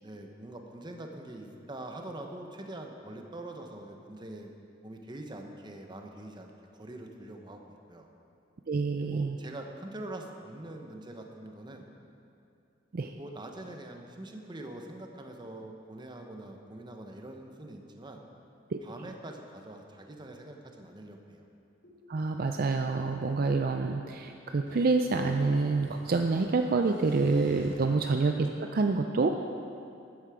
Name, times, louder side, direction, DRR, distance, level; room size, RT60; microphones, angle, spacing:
voice 1, 0.0-4.5 4.8-8.1 9.0-11.8 13.2-18.2 18.8-21.5 27.7-27.9, right 1 dB, 25° right, 3 dB, 1.0 m, -44 dB
voice 2, 8.7-9.4 12.9-13.1 18.7-18.8 22.1-29.3, right 3 dB, 50° right, 5 dB, 0.4 m, -27 dB
sound 1, 21.8-27.7, equal, 60° left, 3.3 m, -53 dB
12.5 x 9.5 x 4.9 m, 2.5 s
head